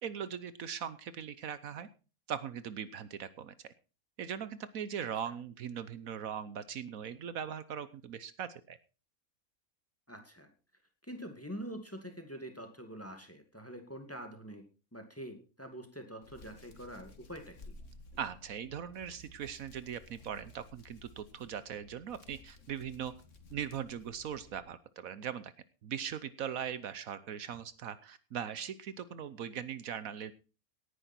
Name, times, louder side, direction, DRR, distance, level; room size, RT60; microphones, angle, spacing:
voice 1, 0.0-1.9 2.3-3.5 4.2-8.8 18.2-23.1 23.5-25.5 25.8-30.3, right 8 dB, 75° right, 14 dB, 1.3 m, -40 dB
voice 2, 10.1-10.5 11.0-14.6 14.9-17.6, equal, 10° left, 6 dB, 2.1 m, -45 dB
Hands, 16.2-24.6, left 2 dB, 60° left, 2.1 m, -55 dB
18.0 x 10.0 x 4.4 m, 0.33 s
omnidirectional pair, 1.5 m